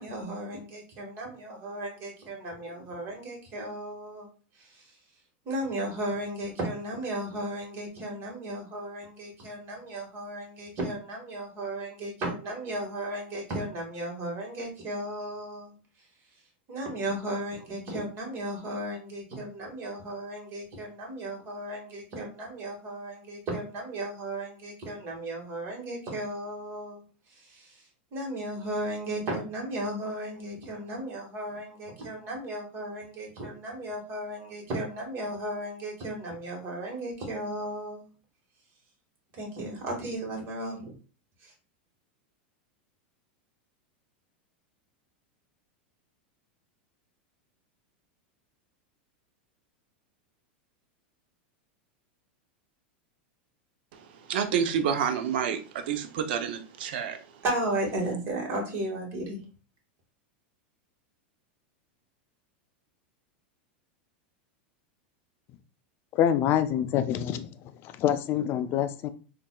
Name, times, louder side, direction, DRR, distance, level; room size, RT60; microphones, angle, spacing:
voice 1, 0.0-4.3 4.5-5.0 5.4-15.7 16.7-27.0 27.3-27.8 28.1-38.1 39.3-40.9 41.4-41.5 57.4-59.4, right 1 dB, 45° right, 1.5 m, -35 dB
voice 2, 53.9-57.4, right 8 dB, 70° right, 0.6 m, -29 dB
voice 3, 66.1-67.5 67.8-69.1, left 10 dB, 40° left, 0.4 m, -26 dB
4.0 x 2.5 x 2.2 m
hypercardioid pair, 115°, 6 cm